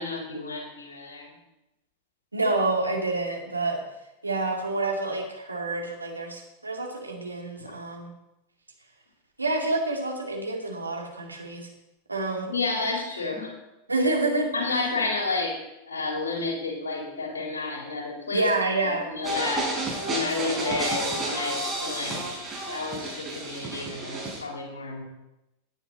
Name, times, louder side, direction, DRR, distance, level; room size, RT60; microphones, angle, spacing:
voice 1, 0.0-1.4 7.6-7.7 12.5-13.6 14.5-15.6 15.9-18.5 18.8-19.7 20.1-22.2 22.7-25.0, left 3 dB, 70° left, 0 dB, 3.8 m, -31 dB
voice 2, 2.3-3.8 4.2-8.1 9.4-11.7 12.1-12.5 13.9-14.5 18.3-19.1, right 2 dB, 80° right, 1 dB, 2.5 m, -28 dB
sound 1, 19.2-24.4, right 1 dB, 15° right, 5.8 m, -31 dB
17.5 x 9.9 x 4.2 m, 0.92 s
figure-of-eight pair, 90°, 0 cm